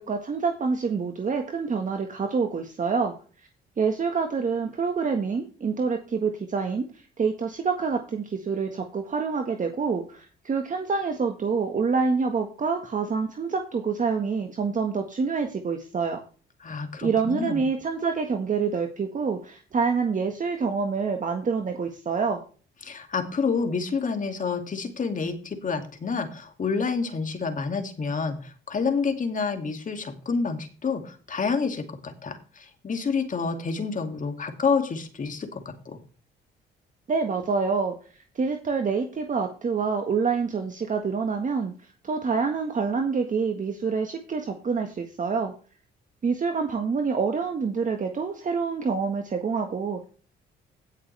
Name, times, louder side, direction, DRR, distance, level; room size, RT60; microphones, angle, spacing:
voice 1, 0.0-3.1 3.8-6.9 7.2-16.2 17.0-22.4 37.1-38.0 38.3-41.7 42.0-45.5 46.2-50.0, right 5 dB, 40° right, 4 dB, 1.6 m, -27 dB
voice 2, 16.6-17.6 22.8-36.0, left 5 dB, 40° left, 6 dB, 2.6 m, -28 dB
17.0 x 6.6 x 3.4 m, 0.37 s
cardioid pair, 90°, 20 cm